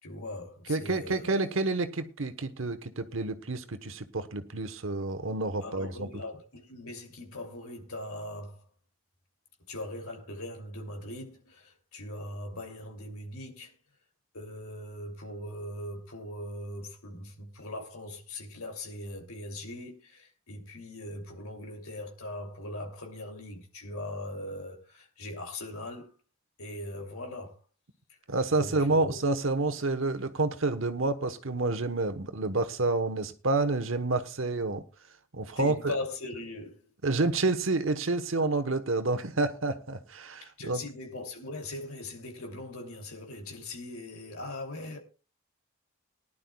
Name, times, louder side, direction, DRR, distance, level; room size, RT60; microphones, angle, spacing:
voice 1, 0.0-1.4 5.6-8.7 9.7-13.7 14.3-26.1 26.6-27.6 28.1-28.2 28.5-29.2 35.6-36.9 40.4-45.0, left 1 dB, 85° left, 2.8 m, -40 dB
voice 2, 0.7-6.1 28.3-34.8 35.3-35.9 37.0-40.8, right 3 dB, 65° right, 1.1 m, -29 dB
19.5 x 11.0 x 2.3 m
head